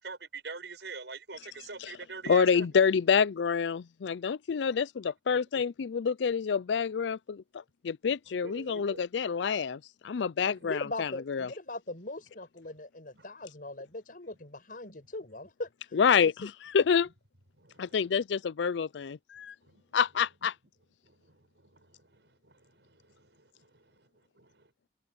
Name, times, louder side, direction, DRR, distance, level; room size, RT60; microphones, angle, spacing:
voice 1, 0.0-2.7 8.3-9.0 10.5-10.7 13.1-13.3 17.6-18.1 19.6-19.8 21.0-24.3, right 4 dB, 80° right, 5.6 m, -45 dB
voice 2, 2.3-7.4 7.8-11.5 15.9-17.1 17.8-19.5 19.9-20.5, left 6 dB, 90° left, 0.4 m, -27 dB
voice 3, 10.4-15.7 16.1-16.5, left 2 dB, 55° left, 5.3 m, -40 dB
head